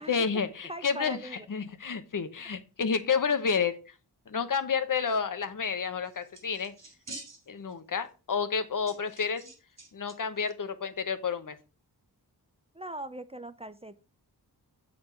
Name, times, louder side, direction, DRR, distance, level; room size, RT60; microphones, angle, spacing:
voice 1, 0.0-1.2 1.5-3.8 4.3-6.7 7.5-9.4 9.9-11.5, left 6 dB, 50° left, 10 dB, 1.0 m, -30 dB
voice 2, 0.7-1.5 12.7-14.0, right 1 dB, 15° right, 12 dB, 0.4 m, -40 dB
sound 1, 6.0-7.7 8.1-8.2 8.9-10.1 10.4-10.5, right 2 dB, 40° right, 3.2 m, -47 dB
8.2 x 4.3 x 5.6 m, 0.33 s
wide cardioid pair, 130°, 40 cm